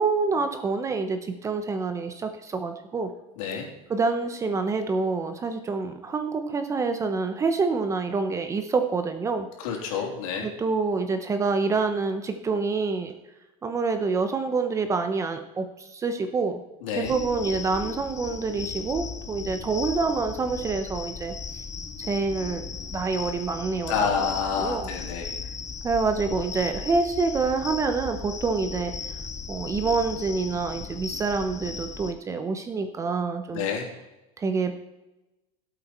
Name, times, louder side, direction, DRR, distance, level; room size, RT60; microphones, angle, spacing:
voice 1, 0.0-3.1 3.9-9.5 10.4-13.1 13.6-16.6 16.9-21.3 22.0-24.3 24.6-24.9 25.8-28.9 29.5-33.7 34.4-34.7, right 4 dB, 15° right, 8 dB, 0.9 m, -27 dB
voice 2, 3.4-3.7 9.6-10.5 16.8-17.1 23.9-25.3 33.5-33.9, left 6 dB, 70° left, 1 dB, 3.3 m, -28 dB
sound 1, 17.0-32.1, left 5 dB, 15° left, 0.7 m, -37 dB
17.0 x 8.1 x 4.4 m, 1.0 s
supercardioid pair, 150°, 18 cm